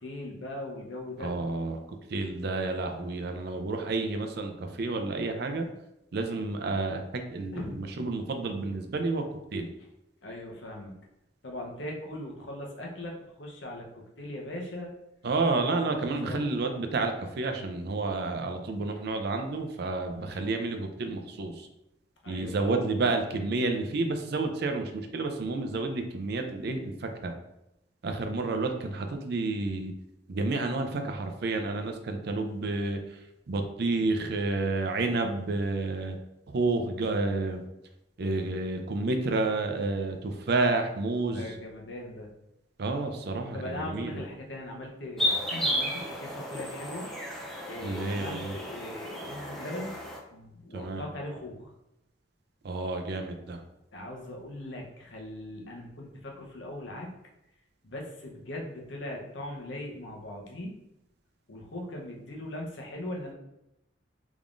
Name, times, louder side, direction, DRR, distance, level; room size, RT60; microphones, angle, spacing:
voice 1, 0.0-1.3 7.5-7.7 9.8-9.9 10.2-11.0 11.4-14.9 16.1-16.5 20.1-20.4 22.2-22.9 41.3-42.3 43.5-47.1 47.7-50.0 50.3-51.7 53.9-57.1 57.8-60.8 61.5-63.3, left 1 dB, 75° left, 0 dB, 0.8 m, -40 dB
voice 2, 1.2-1.8 2.1-5.7 6.1-7.0 7.3-9.2 9.5-9.7 15.2-21.5 22.3-26.9 27.2-27.3 28.0-29.9 30.3-33.0 33.5-36.2 36.5-37.6 38.2-41.5 42.8-43.6 43.9-44.1 47.8-48.5 50.7-51.0 52.6-53.6, right 3 dB, 60° right, 5 dB, 0.5 m, -30 dB
sound 1, 45.2-50.2, equal, ahead, 0.5 m, -33 dB
3.6 x 3.5 x 2.5 m, 0.87 s
head